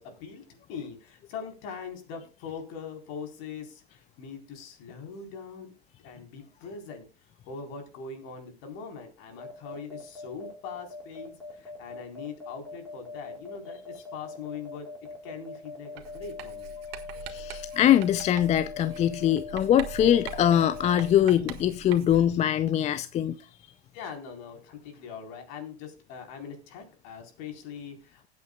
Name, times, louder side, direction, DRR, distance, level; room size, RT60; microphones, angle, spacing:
voice 1, 0.0-5.7 6.0-7.1 7.5-14.9 15.2-16.7 23.9-28.3, left 5 dB, 50° left, 4.2 m, -41 dB
sound 1, 9.4-21.1, left 5 dB, 5° left, 4.9 m, -41 dB
Writing, 16.0-22.4, right 12 dB, 65° right, 1.7 m, -43 dB
voice 2, 17.3-23.3, left 10 dB, 20° left, 0.5 m, -23 dB
19.5 x 8.5 x 2.3 m
hypercardioid pair, 110°, 32 cm